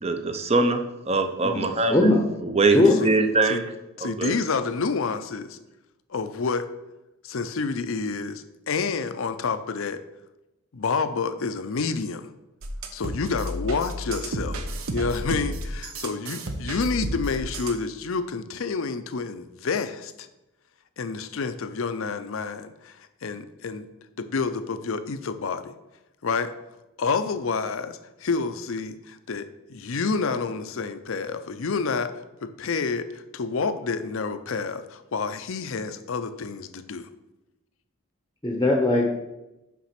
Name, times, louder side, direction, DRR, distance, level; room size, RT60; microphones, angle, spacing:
voice 1, 0.0-2.1 2.4-3.7 4.0-4.4, right 3 dB, 30° right, 7 dB, 0.6 m, -23 dB
voice 2, 1.4-2.2 2.7-2.9 38.4-39.1, left 2 dB, 15° left, 1 dB, 0.7 m, -20 dB
voice 3, 2.7-3.1 3.5-3.7 4.0-5.6 6.1-6.7 7.2-10.0 10.7-12.3 12.9-14.6 14.9-20.3 21.0-23.9 24.2-25.7 26.2-26.5 27.0-32.1 32.4-37.1, left 4 dB, 65° left, 11 dB, 0.5 m, -29 dB
sound 1, 12.6-17.8, right 1 dB, 75° right, 0.8 m, -32 dB
5.9 x 5.1 x 5.8 m, 0.98 s
head